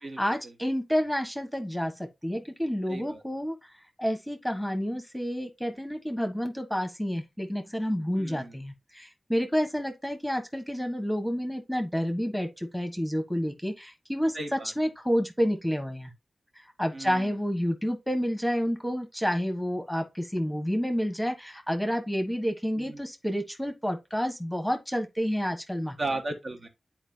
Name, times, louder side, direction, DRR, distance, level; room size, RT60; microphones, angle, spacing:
voice 1, 0.2-3.6 4.0-16.1 16.5-26.0, equal, ahead, 1.4 m, -29 dB
voice 2, 2.9-3.2 8.2-8.6 14.3-14.7 16.9-17.3 22.8-23.0 26.0-26.7, right 2 dB, 55° right, 1.7 m, -35 dB
10.0 x 4.6 x 2.8 m
wide cardioid pair, 100°, 0 cm